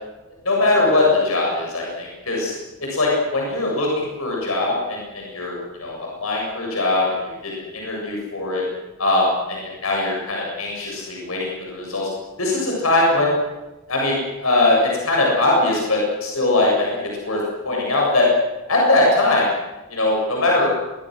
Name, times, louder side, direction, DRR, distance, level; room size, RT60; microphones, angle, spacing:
voice 1, 0.4-2.5 2.8-8.6 9.0-12.1 12.4-13.3 13.9-18.3 18.7-19.5 19.9-20.7, left 2 dB, 80° left, -2 dB, 7.6 m, -21 dB
24.5 x 22.5 x 6.5 m, 1.1 s
head